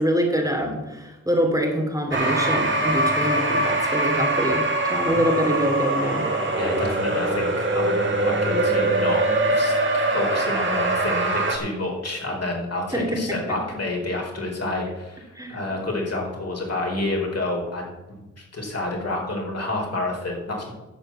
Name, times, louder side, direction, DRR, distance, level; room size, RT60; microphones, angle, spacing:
voice 1, 0.0-6.2 12.9-13.4 15.3-15.6, equal, 10° right, 1 dB, 2.6 m, -25 dB
sound 1, 2.1-11.6, right 2 dB, 35° right, 2.6 m, -23 dB
voice 2, 6.5-17.8 18.4-20.7, left 2 dB, 50° left, -1 dB, 4.6 m, -29 dB
11.0 x 6.7 x 7.4 m, 1.1 s
cardioid pair, 60°, 32 cm